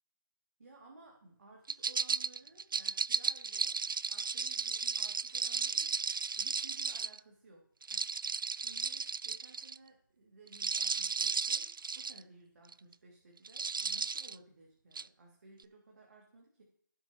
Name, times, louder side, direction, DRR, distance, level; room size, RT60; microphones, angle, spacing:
voice 1, 0.6-3.8 4.1-5.9 6.4-7.6 7.9-16.6, right 2 dB, 55° right, -2 dB, 2.5 m, -58 dB
sound 1, 1.7-7.2 7.8-9.8 10.5-12.2 12.7-12.9 13.4-14.4 15.0-15.1, right 5 dB, 85° right, 0.4 m, -34 dB
15.5 x 7.0 x 3.0 m, 0.64 s
figure-of-eight pair, 160°, 11 cm